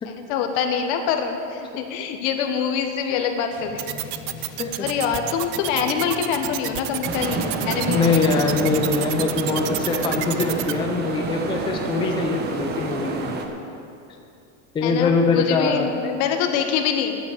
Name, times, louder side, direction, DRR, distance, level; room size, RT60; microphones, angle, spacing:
voice 1, 0.0-4.0 4.8-8.2 14.8-17.2, left 7 dB, 65° left, 5 dB, 1.4 m, -25 dB
sound 1, 3.5-11.0, left 4 dB, 40° left, 1.9 m, -40 dB
sound 2, 3.8-10.7, right 17 dB, 65° right, 0.6 m, -29 dB
sound 3, 7.0-13.5, right 3 dB, 25° right, 0.9 m, -28 dB
voice 2, 7.9-13.5 14.7-15.9, left 4 dB, 15° left, 2 dB, 0.6 m, -23 dB
10.5 x 8.4 x 8.0 m, 2.7 s
cardioid pair, 160°, 39 cm